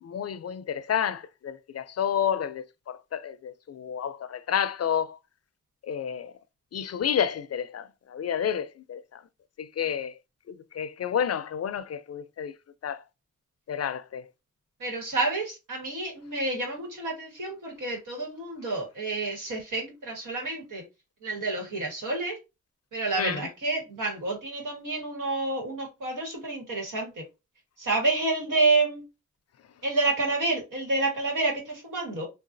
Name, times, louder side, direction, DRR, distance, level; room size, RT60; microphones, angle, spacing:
voice 1, 0.0-5.2 5.8-6.3 6.7-9.2 9.6-10.2 10.5-12.6 12.8-13.0 13.7-14.3 23.2-23.5, left 8 dB, 55° left, 0.4 m, -30 dB
voice 2, 14.8-20.8 21.2-22.4 22.9-27.2 27.8-29.0 29.8-32.3, right 3 dB, 90° right, 1.5 m, -29 dB
3.7 x 2.3 x 2.6 m
cardioid pair, 55°, 30 cm